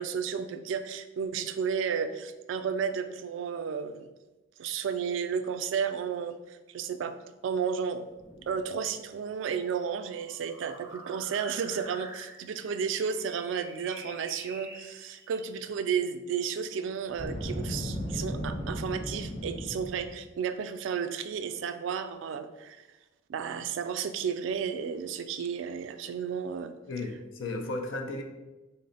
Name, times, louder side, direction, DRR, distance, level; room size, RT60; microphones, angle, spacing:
voice 1, 0.0-4.1 4.6-7.1 7.4-8.0 8.5-22.8 23.3-26.7, right 7 dB, 80° right, 9 dB, 0.3 m, -32 dB
sound 1, 8.1-15.5, right 2 dB, 15° right, 0.4 m, -49 dB
Boom, 17.1-20.2, equal, 60° left, 0.9 m, -35 dB
voice 2, 26.9-28.2, left 2 dB, 85° left, 4 dB, 0.5 m, -34 dB
3.9 x 2.1 x 3.9 m, 1.1 s
head